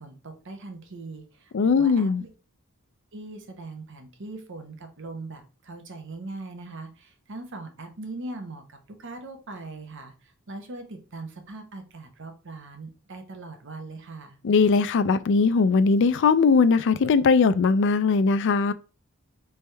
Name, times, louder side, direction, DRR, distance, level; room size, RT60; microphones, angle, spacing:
voice 1, 0.0-2.3 3.1-10.1 10.5-14.4, right 2 dB, 60° right, 0.9 m, -40 dB
voice 2, 1.5-2.2 14.4-18.7, left 4 dB, 60° left, 0.4 m, -20 dB
4.2 x 3.5 x 3.3 m
head